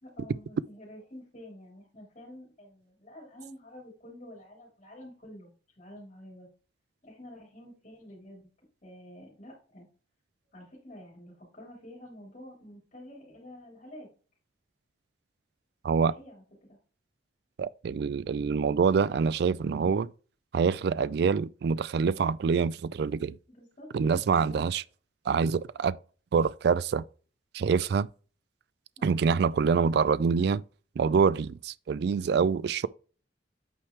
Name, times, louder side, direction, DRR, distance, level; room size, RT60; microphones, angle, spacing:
voice 1, 0.0-6.5 7.0-8.5 8.8-9.9 10.5-14.1 16.1-16.8 23.5-23.9 24.3-24.6 29.0-29.3, left 1 dB, 40° left, 3.3 m, -49 dB
voice 2, 15.8-16.1 17.6-20.1 20.5-23.4 23.9-24.8 25.3-26.0 26.3-27.0 27.5-28.1 29.0-30.6 31.0-32.9, right 5 dB, 60° right, 0.3 m, -25 dB
8.6 x 4.9 x 3.2 m
head